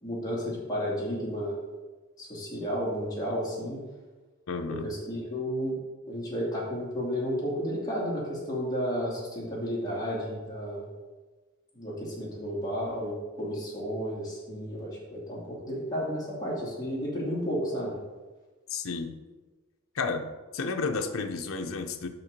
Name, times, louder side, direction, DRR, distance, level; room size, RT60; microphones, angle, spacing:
voice 1, 0.0-1.5 2.2-3.8 4.8-5.7 6.1-10.9 11.7-18.0, equal, 15° left, -7 dB, 2.4 m, -32 dB
voice 2, 4.5-4.9 18.7-19.2 19.9-22.1, left 4 dB, 75° left, 6 dB, 0.6 m, -32 dB
5.8 x 5.8 x 5.2 m, 1.3 s
head